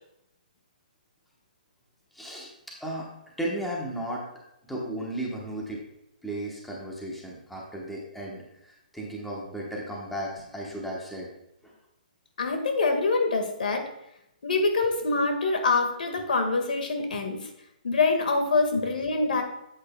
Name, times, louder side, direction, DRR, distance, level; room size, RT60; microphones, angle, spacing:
voice 1, 2.1-2.5 2.8-3.1 3.4-4.2 4.6-5.8 6.2-11.3 11.6-11.7, right 1 dB, ahead, -3 dB, 1.0 m, -35 dB
voice 2, 12.4-13.8 14.4-17.5 17.8-19.4, left 3 dB, 75° left, 5 dB, 1.6 m, -25 dB
10.5 x 8.1 x 2.2 m, 0.83 s
hypercardioid pair, 170°, 5 cm